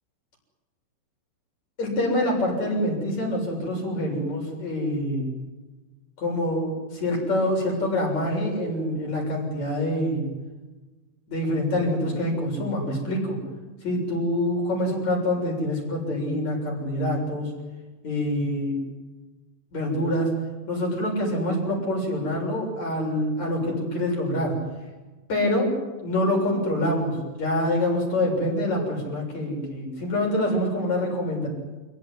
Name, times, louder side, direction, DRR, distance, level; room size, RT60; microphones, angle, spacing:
voice 1, 1.8-5.3 6.2-10.3 11.3-13.4 13.8-17.5 18.0-18.8 19.7-20.3 20.7-24.6 25.3-25.7 26.0-31.5, left 1 dB, 35° left, 1 dB, 8.1 m, -26 dB
29.0 x 18.0 x 9.7 m, 1.2 s
omnidirectional pair, 5.5 m